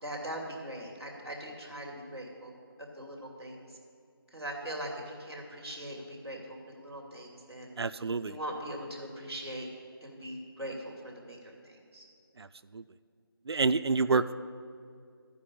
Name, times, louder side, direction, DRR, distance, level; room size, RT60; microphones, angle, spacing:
voice 1, 0.0-2.5 2.8-3.6 4.3-7.7 8.2-9.7 10.0-12.0, right 1 dB, 5° left, -11 dB, 1.3 m, -41 dB
voice 2, 7.8-8.4 12.4-12.5 12.7-12.8 13.5-14.3, right 4 dB, 85° right, 11 dB, 0.4 m, -28 dB
13.0 x 5.3 x 8.5 m, 2.3 s
figure-of-eight pair, 175°, 13 cm